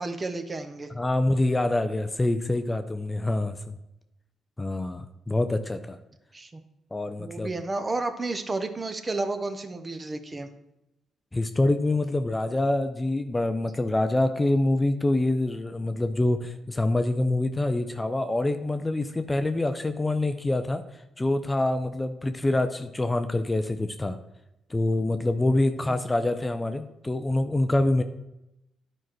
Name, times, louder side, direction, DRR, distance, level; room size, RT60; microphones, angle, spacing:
voice 1, 0.0-0.9 6.3-6.6 7.2-10.5 25.8-26.0, right 3 dB, 30° right, 8 dB, 0.7 m, -32 dB
voice 2, 0.9-3.8 4.6-6.0 6.9-7.5 11.3-20.8 21.2-24.2 24.7-28.0, left 2 dB, 15° left, 8 dB, 0.4 m, -26 dB
10.0 x 4.5 x 3.1 m, 0.89 s
cardioid pair, 90°, 0 cm